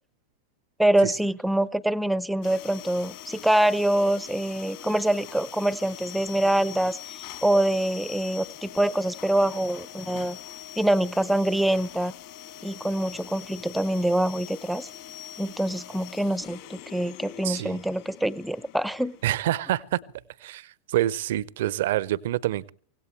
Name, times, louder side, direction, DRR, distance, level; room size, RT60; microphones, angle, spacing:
voice 1, 0.8-10.4 10.8-12.1 12.6-14.9 15.4-19.2, right 1 dB, ahead, 20 dB, 0.7 m, -25 dB
sound 1, 2.4-19.7, left 12 dB, 50° left, 2.5 m, -43 dB
voice 2, 17.4-17.8 19.2-20.0 20.4-22.7, right 14 dB, 55° right, 22 dB, 0.7 m, -27 dB
24.5 x 17.5 x 3.2 m, 0.42 s
figure-of-eight pair, 90°, 0 cm